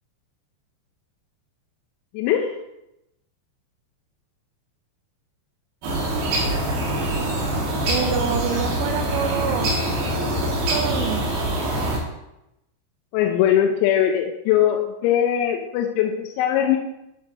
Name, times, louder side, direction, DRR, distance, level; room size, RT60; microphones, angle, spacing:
voice 1, 2.1-2.5 13.1-16.8, left 10 dB, 85° left, 3 dB, 2.7 m, -20 dB
sound 1, 5.8-12.0, right 1 dB, 60° right, 2.5 m, -24 dB
voice 2, 7.9-9.7 10.7-11.3, right 8 dB, 80° right, 5 dB, 2.7 m, -26 dB
11.0 x 6.0 x 2.7 m, 0.87 s
omnidirectional pair, 5.4 m